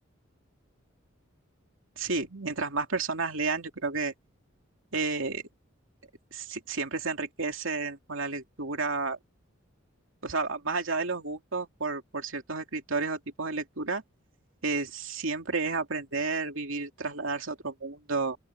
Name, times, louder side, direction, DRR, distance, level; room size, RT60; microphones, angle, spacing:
voice 1, 2.0-4.1 4.9-5.4 6.3-9.2 10.2-14.0 14.6-18.4, right 3 dB, 70° right, 2.8 m, -31 dB
open air
head